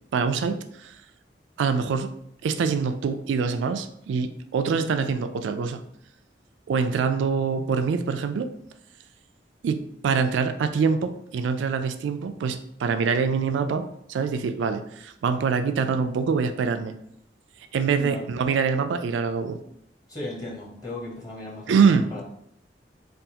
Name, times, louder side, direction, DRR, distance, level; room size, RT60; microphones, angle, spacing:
voice 1, 0.1-1.0 1.6-2.1 2.4-5.8 6.7-8.5 9.6-17.0 17.7-19.6 21.7-22.1, right 5 dB, 90° right, 9 dB, 0.3 m, -25 dB
voice 2, 20.1-22.2, left 1 dB, 20° left, -5 dB, 0.9 m, -36 dB
3.4 x 2.4 x 2.8 m, 0.71 s
head